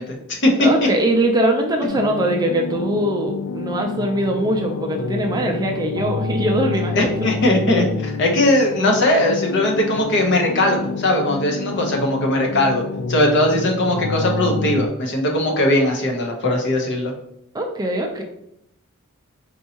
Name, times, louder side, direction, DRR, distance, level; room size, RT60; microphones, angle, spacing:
voice 1, 0.0-0.7 7.0-12.8 13.1-17.1, left 1 dB, 55° left, 1 dB, 0.8 m, -19 dB
voice 2, 0.6-7.1 17.5-18.2, right 1 dB, 20° right, 2 dB, 0.4 m, -21 dB
sound 1, 1.9-14.9, left 4 dB, 85° left, 0.4 m, -28 dB
4.4 x 2.7 x 2.8 m, 0.76 s
head